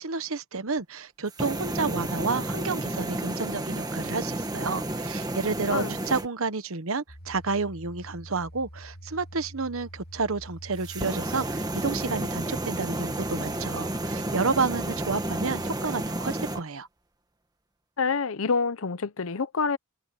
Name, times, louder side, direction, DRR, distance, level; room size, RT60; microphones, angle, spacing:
voice 1, 0.0-16.9, right 4 dB, 70° right, 1.2 m, -30 dB
sound 1, 1.3-6.3 10.8-16.6, right 1 dB, 20° right, 1.5 m, -31 dB
sound 2, 7.1-15.8, equal, 45° left, 3.0 m, -45 dB
voice 2, 18.0-19.8, left 5 dB, 70° left, 0.8 m, -27 dB
head